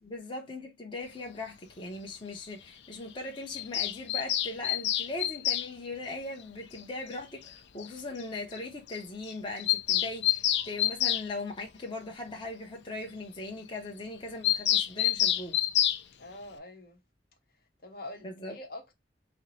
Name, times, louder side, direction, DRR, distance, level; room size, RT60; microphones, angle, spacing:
voice 1, 0.0-15.6 18.2-18.6, left 2 dB, 30° left, 0.8 m, -39 dB
Bird vocalization bird call bird song, 3.5-5.7 7.1-7.2 7.5-7.6 7.8-7.9 8.2-8.3 8.5-8.6 8.9-9.0 9.3-11.3 14.4-16.0, left 12 dB, 75° left, 0.5 m, -27 dB
voice 2, 16.2-17.0 17.8-18.9, left 2 dB, 60° left, 1.0 m, -44 dB
4.5 x 2.1 x 4.0 m
head